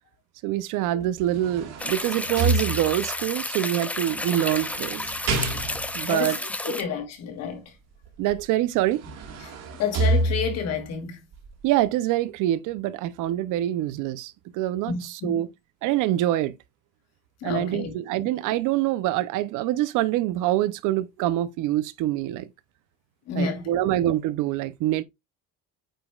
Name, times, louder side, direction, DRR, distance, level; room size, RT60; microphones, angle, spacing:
voice 1, 0.4-5.1 5.9-6.4 6.7-6.8 8.2-9.0 11.6-15.5 15.8-16.5 17.4-22.5 23.3-25.0, right 14 dB, 70° right, 0.7 m, -25 dB
sound 1, 1.0-3.2 4.1-6.1 8.3-8.4 8.8-10.8 11.3-11.5, right 2 dB, 55° right, 2.1 m, -28 dB
sound 2, 1.8-6.8, left 2 dB, 5° left, 0.4 m, -31 dB
voice 2, 6.1-7.7 9.4-11.2 14.9-15.4 17.4-17.9 23.3-23.8, left 6 dB, 50° left, 2.3 m, -30 dB
8.9 x 5.1 x 2.3 m
cardioid pair, 160°, 32 cm